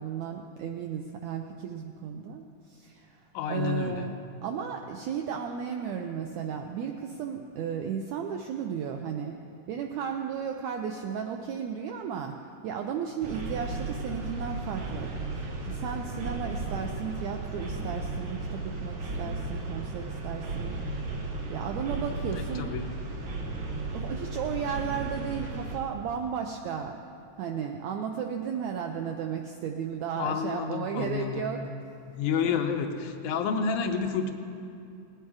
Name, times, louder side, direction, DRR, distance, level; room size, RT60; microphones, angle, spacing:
voice 1, 0.0-4.1 4.4-9.4 9.7-12.4 12.6-21.1 21.5-22.7 23.7-27.0 27.4-31.7 32.4-32.6, right 7 dB, 85° right, 4 dB, 1.6 m, -34 dB
voice 2, 3.3-4.1 22.3-22.9 30.2-31.5 32.1-34.3, left 6 dB, 75° left, 4 dB, 2.0 m, -30 dB
sound 1, 13.2-25.8, right 2 dB, 55° right, 1.5 m, -35 dB
19.0 x 9.1 x 4.8 m, 2.6 s
omnidirectional pair, 3.8 m